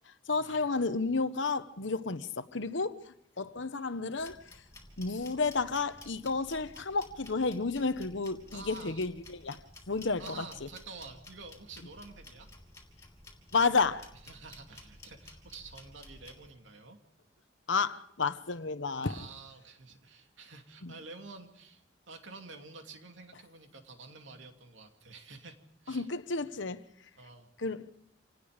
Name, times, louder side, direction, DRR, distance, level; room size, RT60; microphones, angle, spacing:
voice 1, 0.3-3.0 3.4-4.4 5.0-9.6 9.9-10.5 13.5-14.1 17.7-19.1 20.8-20.9 25.9-26.8 27.6-27.9, left 4 dB, 75° left, 1.1 m, -31 dB
sound 1, 4.2-16.5, left 2 dB, 15° left, 3.2 m, -53 dB
voice 2, 8.5-9.1 10.2-12.5 14.2-17.0 19.0-26.1 27.1-27.5, right 4 dB, 75° right, 2.7 m, -49 dB
27.0 x 18.5 x 5.2 m
head